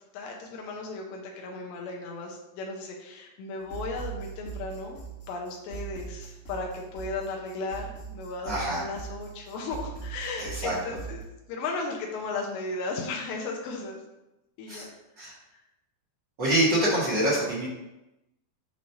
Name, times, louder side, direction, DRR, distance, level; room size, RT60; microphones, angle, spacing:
voice 1, 0.1-5.0 5.3-14.0 14.6-14.9 15.5-15.6, left 3 dB, 90° left, 0 dB, 2.9 m, -35 dB
sound 1, 3.6-11.2, right 7 dB, 55° left, 1.6 m, -41 dB
voice 2, 8.5-8.8 10.4-10.7 14.7-14.8 15.2-15.3 16.4-17.7, right 1 dB, 50° right, -9 dB, 1.4 m, -25 dB
7.4 x 3.1 x 5.5 m, 0.95 s
omnidirectional pair, 5.0 m